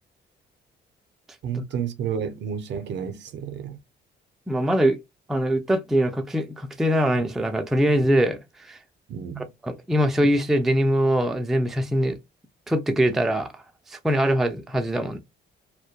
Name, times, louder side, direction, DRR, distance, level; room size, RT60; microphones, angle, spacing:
voice 1, 1.4-3.8 9.1-9.5, right 7 dB, 65° right, 0.5 m, -31 dB
voice 2, 4.5-5.0 5.3-8.4 8.6-8.8 9.6-12.2 12.7-13.6 13.9-15.2, equal, ahead, 0.3 m, -22 dB
2.1 x 2.1 x 2.7 m
cardioid pair, 90°, 20 cm